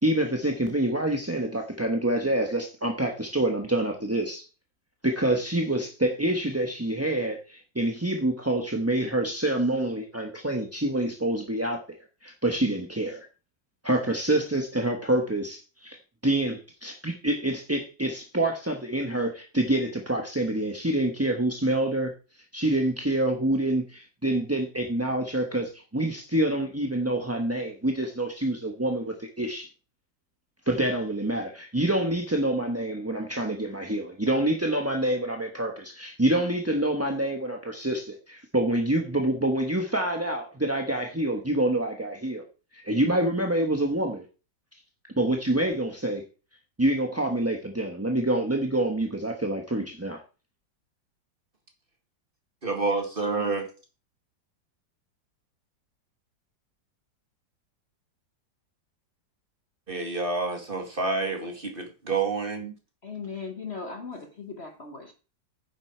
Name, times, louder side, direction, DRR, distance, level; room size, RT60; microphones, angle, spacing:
voice 1, 0.0-4.4 5.0-12.0 12.2-13.3 13.8-16.0 16.2-22.1 22.5-29.7 30.7-42.4 42.7-44.2 45.2-46.2 46.8-50.2, right 1 dB, 10° right, 2 dB, 0.8 m, -27 dB
voice 2, 52.6-53.7 59.9-62.7, right 3 dB, 30° right, 4 dB, 2.1 m, -28 dB
voice 3, 63.0-65.1, left 5 dB, 40° left, 5 dB, 1.3 m, -38 dB
9.8 x 7.8 x 4.5 m, 0.34 s
omnidirectional pair, 2.0 m